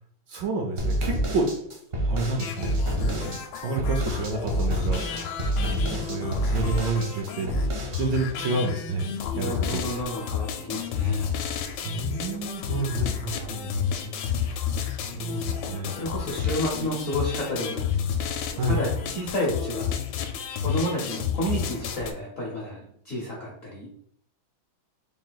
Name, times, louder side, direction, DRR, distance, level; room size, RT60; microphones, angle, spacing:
voice 1, 0.3-1.5 2.0-7.5 7.8-9.1 9.4-9.8 11.8-14.1 14.4-14.6 15.0-16.0 16.4-16.5 18.6-18.8, right 3 dB, 70° right, 2 dB, 1.1 m, -30 dB
sound 1, 0.8-8.0, right 1 dB, 50° right, 0.7 m, -27 dB
sound 2, 2.4-22.1, left 8 dB, 80° left, 1.4 m, -31 dB
voice 2, 9.3-11.3 15.9-17.9 18.7-19.9 20.6-23.9, equal, 60° left, -3 dB, 0.8 m, -31 dB
3.7 x 2.4 x 3.9 m, 0.67 s
omnidirectional pair, 2.3 m